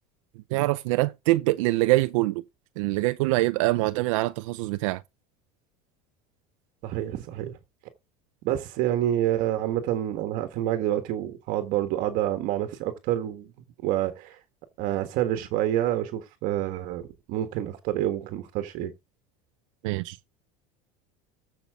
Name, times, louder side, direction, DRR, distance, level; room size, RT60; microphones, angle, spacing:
voice 1, 0.5-2.4 2.8-5.0 19.8-20.2, right 20 dB, 80° right, 0.6 m, -24 dB
voice 2, 6.8-7.6 8.4-13.5 13.8-14.4 14.8-18.9, right 12 dB, 55° right, 1.5 m, -28 dB
14.0 x 5.8 x 3.6 m
supercardioid pair, 140°, 16 cm